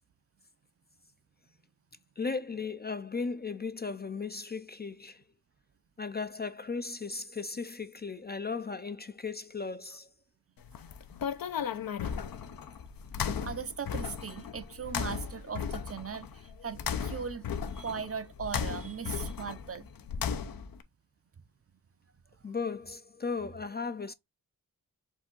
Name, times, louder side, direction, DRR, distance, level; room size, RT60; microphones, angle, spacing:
voice 1, 2.2-5.2 6.0-10.1 22.4-24.1, left 4 dB, 30° left, 0.4 m, -36 dB
sound 1, 10.6-20.8, left 7 dB, 70° left, 0.6 m, -36 dB
voice 2, 13.4-17.4 17.7-19.9 22.5-22.6, right 6 dB, 40° right, 0.6 m, -39 dB
4.7 x 2.7 x 3.7 m
wide cardioid pair, 70°, 37 cm